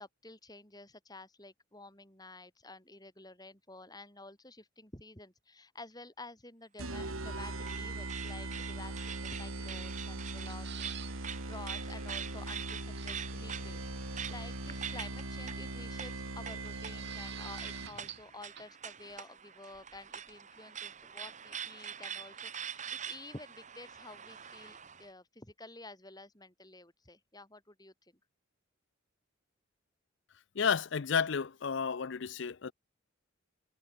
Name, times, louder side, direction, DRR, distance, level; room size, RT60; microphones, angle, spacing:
voice 1, 0.0-28.2, left 2 dB, 20° left, 7.8 m, -51 dB
sound 1, 6.8-18.2, right 2 dB, 90° right, 4.1 m, -40 dB
sound 2, 6.9-25.1, right 8 dB, 35° right, 1.8 m, -45 dB
sound 3, 10.3-11.1 11.5-11.6 11.9-12.0 12.9-13.3 14.6-15.2 16.6-18.3 18.6-18.7, right 10 dB, 55° right, 3.7 m, -48 dB
voice 2, 30.6-32.7, left 6 dB, 60° left, 0.5 m, -31 dB
head